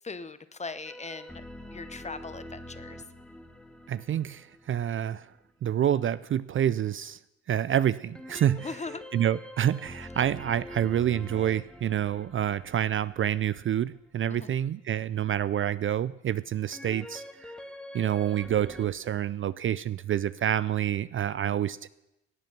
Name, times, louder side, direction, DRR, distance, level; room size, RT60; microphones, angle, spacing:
voice 1, 0.0-1.4 1.7-3.0 8.6-9.0 14.3-14.5, left 4 dB, 20° left, 13 dB, 0.9 m, -39 dB
sound 1, 0.8-5.5 8.1-14.2 16.7-18.9, left 1 dB, 5° left, 1.6 m, -45 dB
voice 2, 3.9-5.3 5.6-7.2 7.5-8.7 9.1-17.5 17.9-21.9, right 10 dB, 45° right, 17 dB, 0.4 m, -28 dB
18.0 x 9.1 x 6.0 m, 0.91 s
cardioid pair, 90°, 30 cm